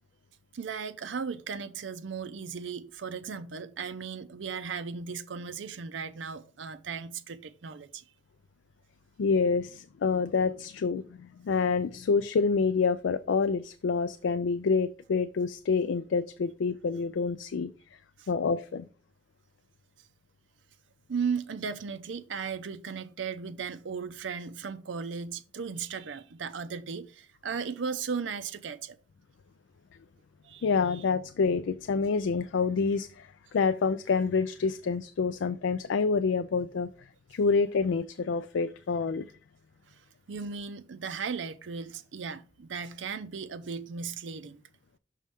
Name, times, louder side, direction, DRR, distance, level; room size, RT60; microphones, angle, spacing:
voice 1, 0.5-8.0 18.2-18.3 21.1-29.0 30.4-30.7 30.9-31.0 39.9-40.0 40.3-44.6, right 6 dB, 90° right, 0.5 m, -36 dB
voice 2, 9.2-18.0 18.3-18.9 30.6-39.3, left 5 dB, 85° left, 0.4 m, -27 dB
6.2 x 5.4 x 3.5 m
head